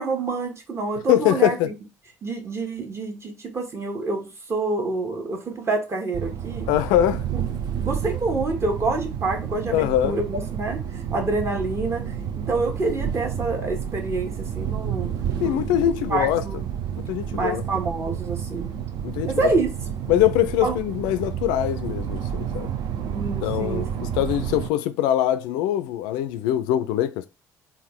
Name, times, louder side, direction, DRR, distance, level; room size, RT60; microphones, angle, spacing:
voice 1, 0.0-1.7 2.2-6.7 7.8-15.1 15.4-15.8 16.1-16.7 17.3-18.7 19.2-19.7 20.6-20.7 23.0-24.1, right 3 dB, 30° right, 1.3 m, -27 dB
voice 2, 1.1-1.7 6.7-7.2 9.7-10.2 15.4-16.4 17.1-17.6 19.0-19.3 20.1-22.7 23.4-27.3, left 12 dB, 65° left, 0.3 m, -22 dB
sound 1, 6.1-24.7, right 8 dB, 55° right, 0.6 m, -30 dB
3.7 x 2.4 x 3.6 m
figure-of-eight pair, 55°, 8 cm